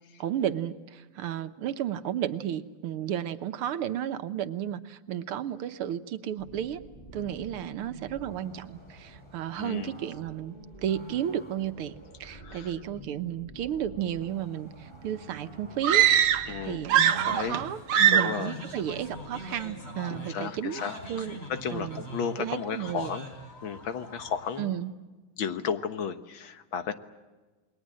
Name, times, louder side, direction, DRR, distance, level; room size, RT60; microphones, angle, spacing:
voice 1, 0.2-6.8 7.1-10.6 10.8-12.0 12.2-16.1 16.6-20.8 21.1-21.4 21.7-22.0 22.4-23.1 24.6-24.9, right 10 dB, 90° right, 10 dB, 1.9 m, -33 dB
sound 1, 6.4-19.8, right 1 dB, 10° left, 8.0 m, -49 dB
voice 2, 9.6-9.9 12.3-12.7 16.5-17.6 18.1-18.6 20.1-23.3 23.6-24.7 25.4-26.9, left 7 dB, 70° left, 9 dB, 2.0 m, -34 dB
sound 2, 15.8-16.6 16.8-17.6 17.9-18.4, right 10 dB, 75° right, 1.7 m, -22 dB
sound 3, 17.0-24.6, equal, 30° left, 4.3 m, -43 dB
28.0 x 21.5 x 7.6 m, 1.2 s
omnidirectional pair, 2.4 m